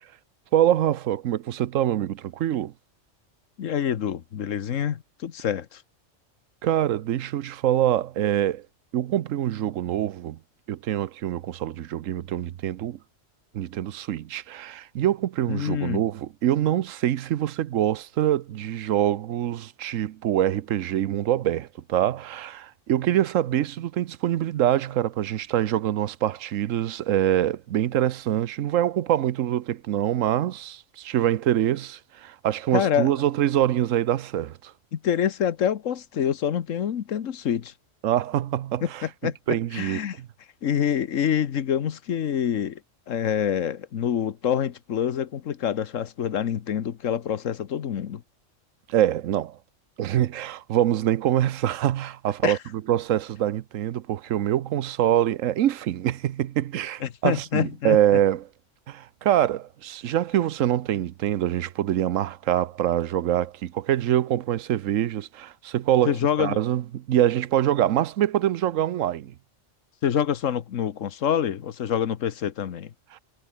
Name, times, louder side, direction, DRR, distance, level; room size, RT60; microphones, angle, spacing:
voice 1, 0.5-2.7 6.6-8.6 8.9-10.4 10.7-13.0 13.5-34.7 38.0-39.0 39.5-40.3 48.9-49.6 50.0-58.4 58.9-69.3 73.1-73.2, right 12 dB, 90° right, 1.1 m, -25 dB
voice 2, 3.6-5.8 15.5-16.0 32.7-33.1 34.9-37.7 38.8-40.2 40.6-42.8 43.1-48.2 52.4-52.6 57.0-58.0 66.1-66.6 70.0-72.9, left 9 dB, 85° left, 1.4 m, -26 dB
omnidirectional pair, 1.3 m